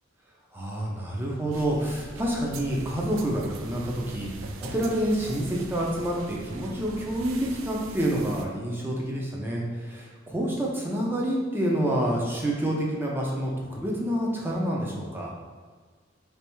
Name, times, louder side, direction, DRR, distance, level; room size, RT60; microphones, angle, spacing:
voice 1, 0.5-4.3 4.6-15.3, right 1 dB, 10° right, -3 dB, 0.6 m, -28 dB
sound 1, 1.5-8.5, right 3 dB, 85° right, 0.4 m, -41 dB
3.3 x 3.1 x 3.0 m, 1.5 s
head